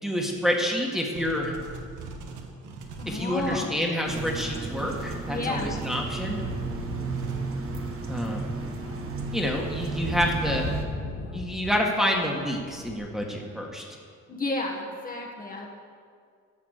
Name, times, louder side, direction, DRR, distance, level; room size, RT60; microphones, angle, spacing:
voice 1, 0.0-1.5 3.1-6.4 8.1-8.5 9.3-10.7 11.3-13.8, equal, ahead, -1 dB, 1.8 m, -28 dB
sound 1, 1.1-6.0 7.1-7.4, right 3 dB, 85° right, 1.4 m, -41 dB
voice 2, 3.0-3.7 5.3-5.7 14.3-15.7, left 2 dB, 30° left, 0 dB, 1.6 m, -31 dB
sound 2, 4.0-10.8, right 4 dB, 45° right, 1.5 m, -33 dB
sound 3, 5.9-11.8 12.1-13.0, left 4 dB, 90° left, 1.4 m, -39 dB
12.0 x 6.6 x 6.7 m, 2.1 s
cardioid pair, 90°, 30 cm